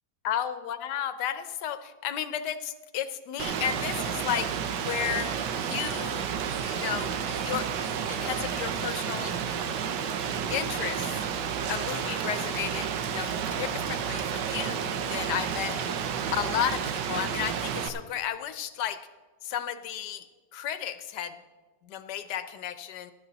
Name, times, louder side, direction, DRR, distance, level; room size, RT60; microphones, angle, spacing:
voice 1, 0.2-5.3 5.6-6.3 6.6-7.7 8.1-9.3 10.5-11.1 11.7-15.8 16.3-19.0 19.4-20.3 20.5-21.4 21.8-23.1, left 10 dB, 80° left, 11 dB, 1.3 m, -33 dB
Rain, 3.4-17.9, right 7 dB, 85° right, 1.4 m, -31 dB
15.0 x 10.5 x 4.0 m, 1.3 s
omnidirectional pair, 1.8 m